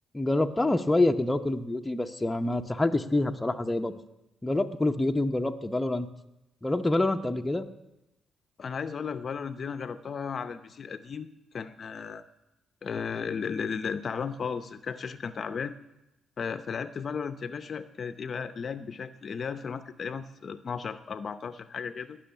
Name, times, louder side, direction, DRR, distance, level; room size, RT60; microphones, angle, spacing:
voice 1, 0.1-4.0 4.4-6.1 6.6-7.7, left 2 dB, 10° left, 5 dB, 0.8 m, -26 dB
voice 2, 8.6-11.3 11.5-12.2 12.8-15.7 16.4-22.2, left 6 dB, 45° left, 11 dB, 0.7 m, -35 dB
18.5 x 6.4 x 10.0 m, 0.92 s
cardioid pair, 105°, 0 cm